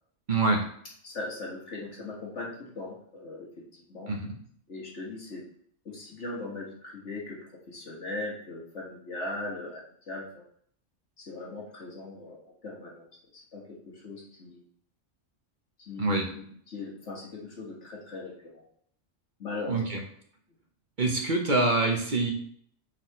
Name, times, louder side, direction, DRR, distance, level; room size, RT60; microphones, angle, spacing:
voice 1, 0.3-0.6 4.1-4.4 16.0-16.3 19.7-20.0 21.0-22.3, right 2 dB, 40° right, 1 dB, 1.0 m, -25 dB
voice 2, 1.0-3.5 3.9-4.1 4.7-5.4 5.9-7.4 7.7-10.4 11.2-13.1 13.3-14.6 15.8-16.1 16.3-18.6 19.4-20.0, left 2 dB, 65° left, -3 dB, 2.1 m, -39 dB
6.0 x 5.0 x 4.3 m, 0.63 s
omnidirectional pair, 1.3 m